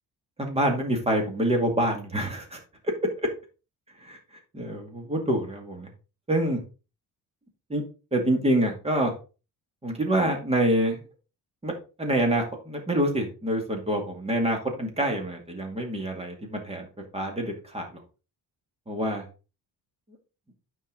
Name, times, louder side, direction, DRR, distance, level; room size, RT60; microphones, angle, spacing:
voice 1, 0.4-2.6 4.0-4.2 4.5-5.9 6.3-6.6 7.7-7.8 8.1-9.1 9.8-11.0 11.6-11.7 12.0-16.9 17.1-18.0 18.9-19.3, right 1 dB, 15° right, 2 dB, 2.2 m, -26 dB
9.3 x 5.7 x 3.9 m, 0.32 s
cardioid pair, 150°, 38 cm